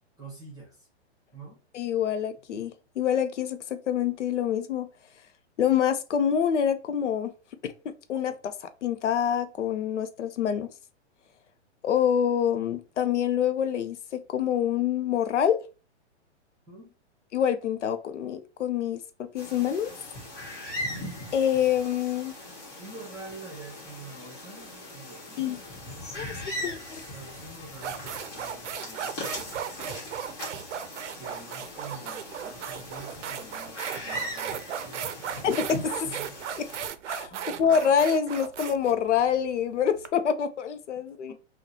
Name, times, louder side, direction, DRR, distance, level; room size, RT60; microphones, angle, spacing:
voice 1, 0.2-0.9 1.3-1.6 16.7-16.9 22.8-25.7 27.1-29.7 31.2-35.4 36.0-36.4 37.3-37.7 40.9-41.3, right 3 dB, 10° right, 1.2 m, -46 dB
voice 2, 1.7-4.9 5.6-7.3 7.6-10.7 11.8-15.6 17.3-19.9 21.3-22.3 25.4-25.6 26.1-27.0 35.4-35.9 37.1-37.3 37.6-41.3, left 8 dB, 90° left, 0.6 m, -26 dB
sound 1, 19.4-36.9, left 1 dB, 30° left, 1.5 m, -40 dB
sound 2, 27.1-27.3 27.7-40.1, right 8 dB, 85° right, 0.5 m, -36 dB
3.6 x 2.3 x 2.8 m
hypercardioid pair, 135°, 35 cm